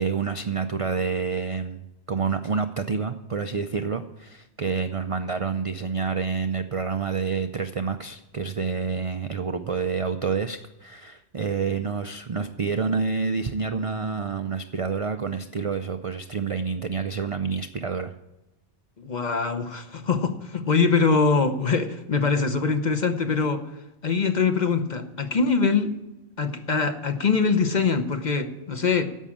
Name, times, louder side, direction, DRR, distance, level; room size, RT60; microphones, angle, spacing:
voice 1, 0.0-18.1, right 5 dB, 50° right, 8 dB, 0.4 m, -28 dB
voice 2, 19.0-23.7 24.0-25.9 26.4-29.0, left 5 dB, 45° left, 7 dB, 0.9 m, -23 dB
11.0 x 7.3 x 8.5 m, 0.99 s
omnidirectional pair, 1.2 m